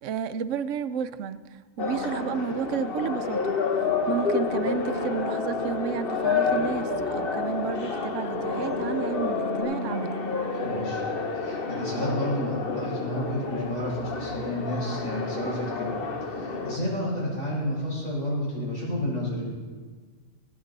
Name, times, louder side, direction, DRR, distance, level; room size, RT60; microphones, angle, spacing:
voice 1, 0.0-10.2, right 8 dB, 75° right, 12 dB, 0.9 m, -32 dB
sound 1, 1.8-16.8, left 4 dB, 50° left, 1.3 m, -29 dB
sound 2, 3.6-9.6, left 3 dB, 25° left, 3.9 m, -35 dB
voice 2, 10.6-11.0 11.3-16.0 16.4-19.4, left 1 dB, 90° left, -5 dB, 5.1 m, -31 dB
20.0 x 9.6 x 4.0 m, 1.5 s
omnidirectional pair, 1.3 m